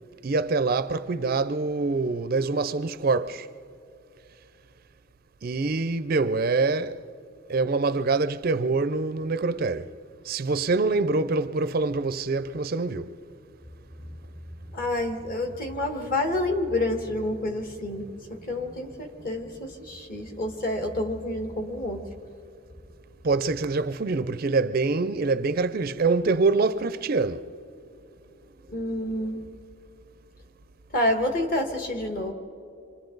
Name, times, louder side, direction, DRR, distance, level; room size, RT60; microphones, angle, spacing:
voice 1, 0.2-3.5 5.4-7.0 7.5-9.9 10.2-13.1 23.2-27.5, right 3 dB, 45° right, 0.4 m, -25 dB
voice 2, 14.7-22.1 28.7-29.5 30.9-32.3, left 1 dB, 45° left, 1.7 m, -28 dB
28.0 x 26.0 x 3.9 m
head